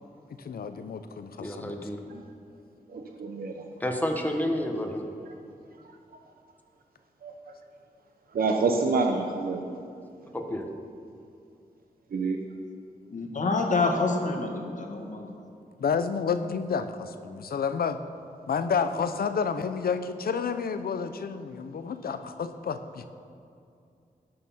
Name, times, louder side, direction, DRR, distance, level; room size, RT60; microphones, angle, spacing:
voice 1, 0.4-1.9 15.8-18.0 18.5-23.1, left 6 dB, 85° left, 10 dB, 0.7 m, -30 dB
voice 2, 1.4-2.0 3.8-5.0 10.3-10.7, left 1 dB, 10° left, 2 dB, 1.3 m, -30 dB
voice 3, 2.9-3.6 7.2-7.3 8.3-9.6 12.1-12.4, right 4 dB, 75° right, 3 dB, 0.8 m, -27 dB
voice 4, 13.1-15.3, left 3 dB, 55° left, 2 dB, 1.6 m, -27 dB
17.5 x 6.7 x 5.7 m, 2.5 s
wide cardioid pair, 125°, 15 cm